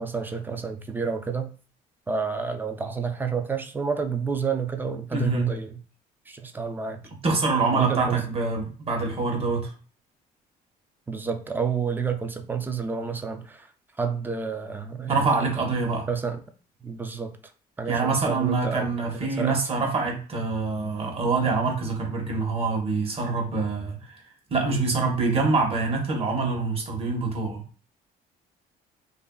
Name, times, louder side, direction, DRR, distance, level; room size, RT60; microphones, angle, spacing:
voice 1, 0.0-1.5 2.1-5.7 6.3-7.0 7.7-8.2 11.1-13.7 14.0-15.3 16.1-16.4 16.8-17.3 17.8-18.9 19.4-19.6, right 5 dB, 10° right, 6 dB, 0.3 m, -29 dB
voice 2, 5.1-5.5 7.2-9.7 15.1-16.1 17.9-24.0 24.5-27.6, right 3 dB, 35° right, 2 dB, 0.9 m, -25 dB
2.9 x 2.5 x 2.2 m, 0.39 s
cardioid pair, 110°, 17 cm